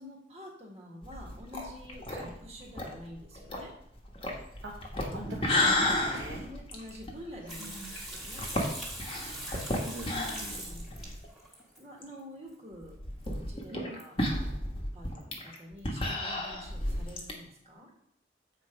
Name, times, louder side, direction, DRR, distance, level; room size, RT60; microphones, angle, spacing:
voice 1, 0.0-2.1 2.4-3.7 6.0-8.5 9.7-11.1 11.8-13.0 13.2-17.9, left 1 dB, 35° right, -1 dB, 1.6 m, -47 dB
sound 1, 1.0-11.3 11.6-11.7 12.0-12.1 12.8-17.3, left 1 dB, 30° left, 1.3 m, -33 dB
voice 2, 4.6-6.5 7.6-7.9 9.2-10.1 13.7-14.0, right 2 dB, 90° right, -2 dB, 1.1 m, -44 dB
Water tap faucet / Sink (filling or washing), 7.5-11.8 13.2-13.3 13.6-13.7 14.0-14.1, right 1 dB, ahead, 1.8 m, -42 dB
7.9 x 4.6 x 5.0 m, 0.77 s
head